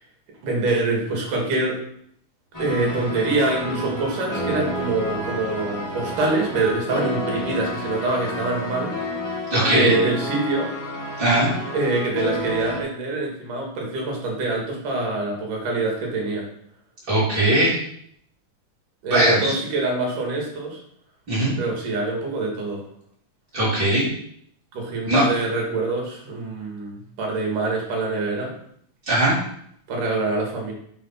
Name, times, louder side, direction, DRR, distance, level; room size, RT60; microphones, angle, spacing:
voice 1, 0.4-1.8 2.6-8.9 9.7-10.7 11.7-16.4 19.0-20.8 21.6-22.8 24.7-28.6 29.9-30.7, right 2 dB, 75° right, -1 dB, 3.4 m, -25 dB
sound 1, 2.5-12.8, equal, 15° left, 0.7 m, -30 dB
voice 2, 9.5-10.0 11.2-11.5 17.1-17.8 19.1-19.5 21.3-21.5 23.5-24.1 25.1-25.2 29.1-29.4, right 1 dB, 30° right, -9 dB, 4.0 m, -19 dB
8.0 x 4.1 x 5.5 m, 0.67 s
omnidirectional pair, 3.8 m